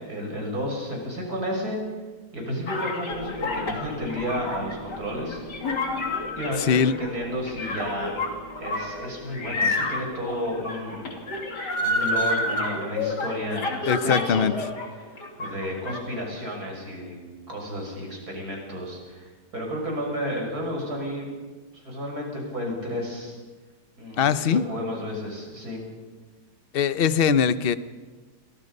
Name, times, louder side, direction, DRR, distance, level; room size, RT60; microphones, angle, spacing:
voice 1, 0.0-1.8 2.3-5.4 5.8-5.9 6.3-8.2 8.6-11.1 11.8-14.5 15.4-17.2 17.5-21.3 21.7-23.4 24.0-25.9, equal, 65° right, 0 dB, 7.1 m, -32 dB
sound 1, 2.7-14.9 15.2-16.0, left 2 dB, 85° left, 3.5 m, -29 dB
sound 2, 3.1-11.7, right 1 dB, 20° right, 2.5 m, -44 dB
voice 2, 6.6-6.9 13.9-14.5 24.2-24.7 26.7-27.8, left 7 dB, 45° left, 13 dB, 0.9 m, -21 dB
28.5 x 24.0 x 5.5 m, 1.3 s
omnidirectional pair, 1.8 m